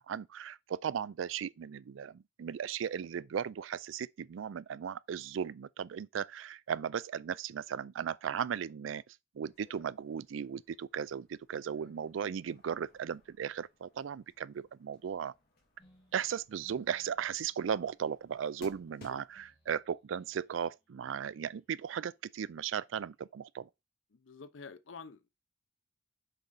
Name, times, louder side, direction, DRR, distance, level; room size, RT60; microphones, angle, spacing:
voice 1, 0.0-15.3 16.1-23.7, right 7 dB, 90° right, 0.4 m, -37 dB
sound 1, 9.4-19.4, left 2 dB, 55° left, 2.5 m, -61 dB
sound 2, 15.8-23.3, equal, 30° left, 3.4 m, -70 dB
voice 2, 24.1-25.3, left 5 dB, 90° left, 0.7 m, -49 dB
6.7 x 4.8 x 4.0 m
head